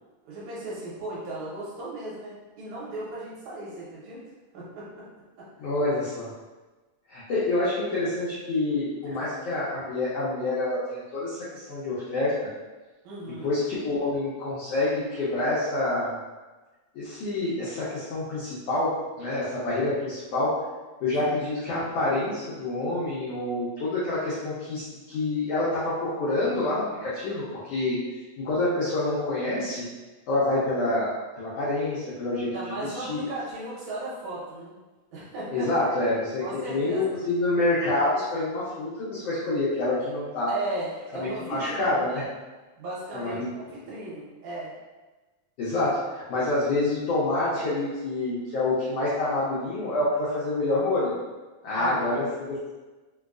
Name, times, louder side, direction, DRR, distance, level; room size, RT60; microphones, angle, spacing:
voice 1, 0.3-4.2 4.5-5.1 5.4-5.5 9.0-9.3 13.0-13.5 21.2-21.4 32.5-34.8 35.1-35.7 36.4-37.0 40.5-42.2 42.8-44.7 51.8-52.2, right 1 dB, 70° right, -7 dB, 2.2 m, -36 dB
voice 2, 5.6-6.3 7.1-12.3 13.4-16.1 16.9-18.9 19.2-20.5 21.0-28.0 28.4-29.9 30.3-31.1 31.4-32.5 32.8-33.3 35.5-40.5 41.2-42.2 43.1-43.5 45.6-51.1 51.6-52.7, left 2 dB, 85° left, -9 dB, 1.4 m, -27 dB
4.9 x 2.2 x 2.4 m, 1.2 s
omnidirectional pair, 3.6 m